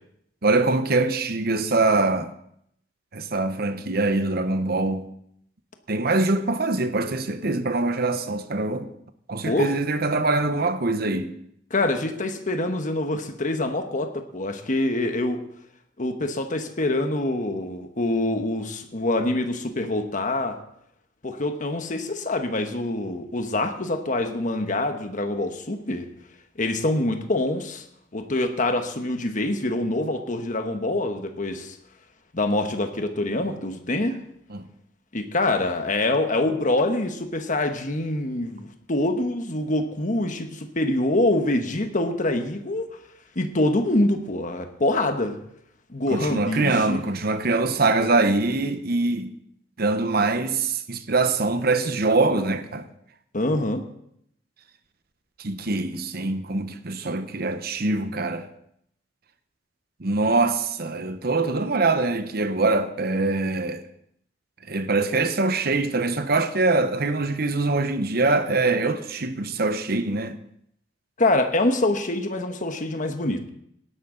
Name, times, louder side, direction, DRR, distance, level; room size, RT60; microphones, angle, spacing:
voice 1, 0.4-2.3 3.1-5.1 5.9-8.9 9.3-11.3 34.5-34.7 46.1-49.3 49.8-52.9 55.4-58.5 60.0-63.8 64.7-70.4, right 3 dB, 55° right, 1.0 m, -23 dB
voice 2, 11.7-15.4 16.0-20.6 21.2-26.1 26.6-27.8 28.1-31.8 32.3-34.2 35.1-42.9 43.3-45.4 45.9-47.0 53.3-53.8 71.2-73.5, left 2 dB, 45° left, 1.3 m, -25 dB
18.0 x 11.0 x 3.9 m
head